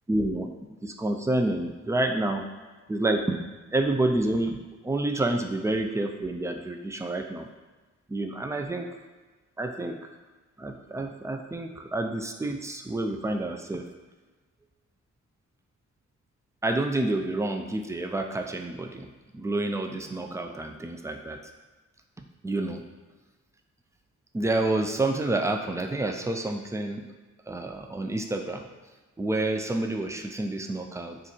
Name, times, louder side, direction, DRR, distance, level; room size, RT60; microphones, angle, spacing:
voice 1, 0.1-2.5 2.9-3.4 3.7-4.6 4.8-7.5 8.1-8.9 9.6-10.1 10.6-13.9 16.6-19.1 19.3-21.4 22.2-22.8 24.3-27.1 27.5-28.6 29.2-31.2, right 2 dB, 10° right, 4 dB, 0.3 m, -29 dB
2.9 x 2.4 x 4.1 m, 1.3 s
cardioid pair, 70°, 30 cm